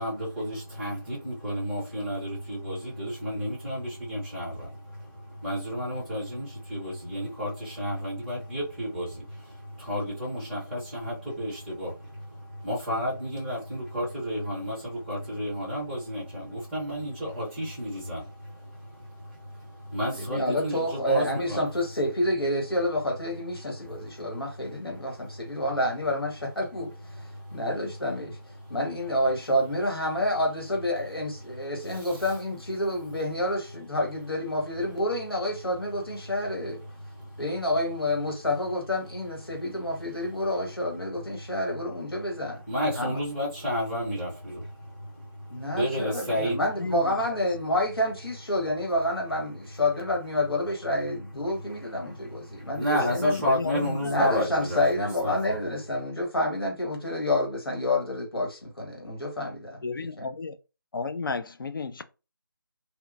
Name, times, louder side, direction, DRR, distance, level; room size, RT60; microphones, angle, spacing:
voice 1, 0.0-21.6 23.8-25.6 27.1-27.7 28.6-28.8 31.9-32.3 37.1-37.4 42.7-46.6 52.0-55.6, equal, ahead, 0.5 m, -32 dB
voice 2, 20.1-27.2 27.5-28.4 28.7-36.8 37.4-42.6 42.9-43.2 45.5-53.4 54.0-60.3, left 1 dB, 90° left, 1.5 m, -28 dB
voice 3, 46.8-47.2 53.5-54.3 59.8-60.6 60.9-62.0, left 4 dB, 65° left, 0.4 m, -33 dB
2.8 x 2.2 x 2.4 m
figure-of-eight pair, 165°, 12 cm